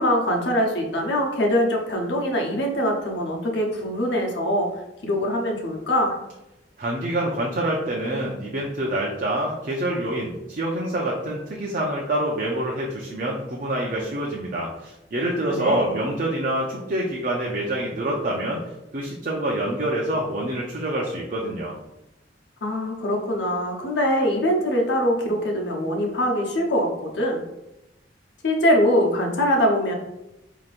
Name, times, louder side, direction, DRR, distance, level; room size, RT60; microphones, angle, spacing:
voice 1, 0.0-4.7 5.0-6.1 15.5-16.0 22.6-27.4 28.4-29.9, equal, 80° left, 0 dB, 0.9 m, -23 dB
voice 2, 6.8-18.6 18.9-21.8, right 1 dB, 50° right, -3 dB, 0.6 m, -26 dB
4.9 x 2.9 x 2.5 m, 0.93 s
head